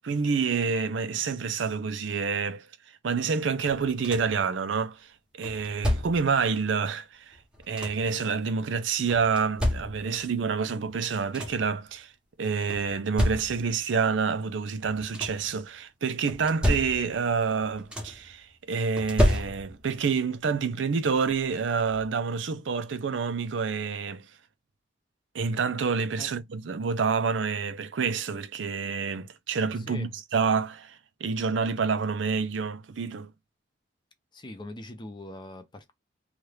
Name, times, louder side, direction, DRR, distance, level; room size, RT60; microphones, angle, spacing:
voice 1, 0.0-2.7 3.0-7.4 7.7-12.1 12.4-24.3 25.3-33.3, right 5 dB, 80° right, 0.5 m, -28 dB
sound 1, 3.7-4.5 5.4-6.4 7.3-8.2 9.1-10.3 10.9-11.0 11.2-11.8 12.7-13.8 14.8-15.6 16.3-17.3 17.6-18.3 19.0-20.0 21.3-21.4 21.9-22.1, left 1 dB, 5° right, 0.8 m, -30 dB
voice 2, 29.8-30.1 34.3-35.9, left 1 dB, 25° left, 0.6 m, -42 dB
2.8 x 2.4 x 3.2 m
head